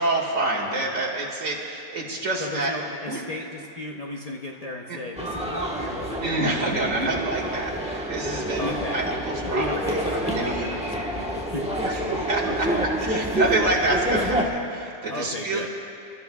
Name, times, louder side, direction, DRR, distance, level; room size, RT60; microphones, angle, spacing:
voice 1, 0.0-2.7 3.0-3.2 6.2-10.9 11.8-15.7, right 2 dB, 70° right, -2 dB, 2.5 m, -27 dB
voice 2, 2.4-7.2 8.6-9.0 9.4-12.1 12.4-12.9 13.9-14.0 15.1-15.7, left 1 dB, 35° left, -1 dB, 0.8 m, -35 dB
sound 1, 5.2-14.5, right 1 dB, 5° right, 1.1 m, -28 dB
28.5 x 13.5 x 2.3 m, 2.6 s
omnidirectional pair, 1.4 m